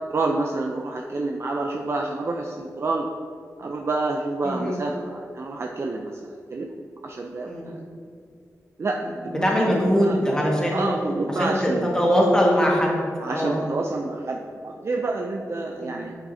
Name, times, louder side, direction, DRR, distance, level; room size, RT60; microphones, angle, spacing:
voice 1, 0.1-3.1 3.6-6.7 7.0-7.6 8.8-9.0 9.2-9.5 9.8-10.2 10.7-11.9 13.2-16.2, right 3 dB, 45° right, 1 dB, 0.5 m, -28 dB
voice 2, 4.4-4.8 7.5-7.8 9.3-10.9 11.4-13.0 13.3-13.6 15.8-16.0, equal, 10° left, -3 dB, 1.6 m, -22 dB
8.8 x 6.1 x 2.7 m, 2.3 s
wide cardioid pair, 95°, 6 cm